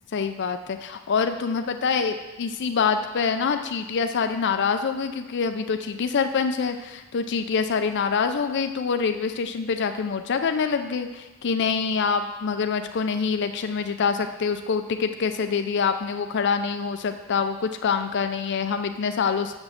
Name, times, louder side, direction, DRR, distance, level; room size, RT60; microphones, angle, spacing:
voice 1, 0.1-19.5, left 5 dB, 55° left, 7 dB, 0.4 m, -25 dB
7.0 x 6.2 x 6.5 m, 1.1 s
head